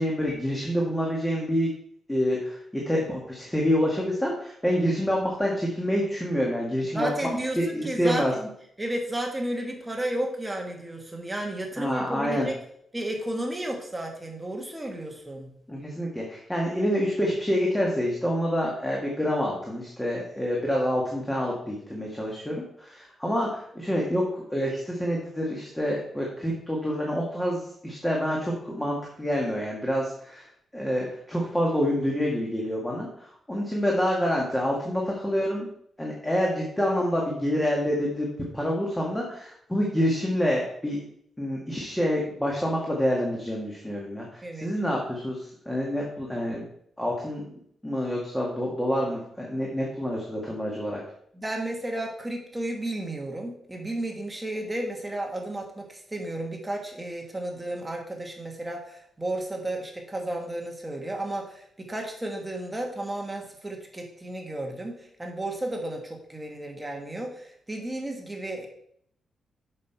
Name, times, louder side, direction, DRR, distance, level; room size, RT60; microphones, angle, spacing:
voice 1, 0.0-1.7 2.1-7.1 7.6-8.3 11.8-12.5 15.7-24.2 24.5-30.5 30.7-35.7 36.0-38.3 38.5-41.0 41.4-46.6 47.0-51.0, equal, 5° left, -2 dB, 1.6 m, -27 dB
voice 2, 6.9-8.5 8.8-12.5 12.9-15.5 44.4-44.7 51.3-68.7, right 1 dB, 10° right, 1 dB, 1.5 m, -33 dB
7.7 x 6.5 x 4.5 m, 0.68 s
cardioid pair, 135°, 0 cm